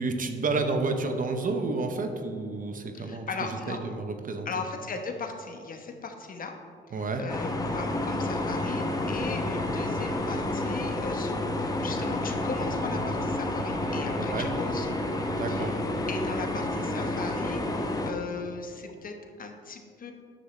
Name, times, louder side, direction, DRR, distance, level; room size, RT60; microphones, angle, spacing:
voice 1, 0.0-3.3 3.7-4.5 6.9-7.2 14.1-14.5 15.4-15.7, right 3 dB, 45° right, 6 dB, 0.8 m, -30 dB
voice 2, 2.9-3.8 4.4-6.6 6.9-15.0 15.5-15.8 16.1-20.1, left 4 dB, 45° left, 4 dB, 1.0 m, -38 dB
sound 1, 7.3-18.1, left 1 dB, 20° left, 0.8 m, -30 dB
10.0 x 6.9 x 3.2 m, 2.1 s
cardioid pair, 90°, 20 cm